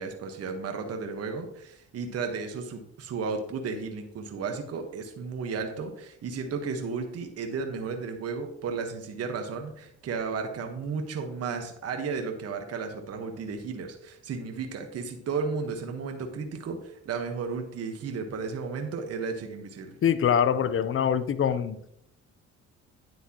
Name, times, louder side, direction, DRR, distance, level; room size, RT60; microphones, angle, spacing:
voice 1, 0.0-20.0, right 5 dB, 55° right, 5 dB, 1.4 m, -34 dB
voice 2, 20.0-21.8, left 8 dB, 45° left, 14 dB, 0.7 m, -24 dB
9.8 x 7.7 x 3.0 m, 0.74 s
supercardioid pair, 80°, 30 cm